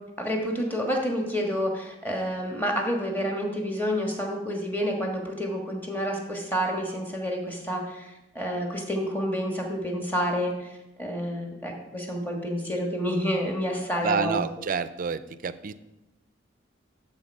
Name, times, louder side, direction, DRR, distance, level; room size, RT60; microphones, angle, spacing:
voice 1, 0.2-8.0 8.3-10.7 11.0-14.4, equal, 10° left, 0 dB, 1.4 m, -29 dB
voice 2, 14.0-15.7, right 5 dB, 45° right, 13 dB, 0.4 m, -29 dB
12.0 x 4.2 x 5.3 m, 0.98 s
head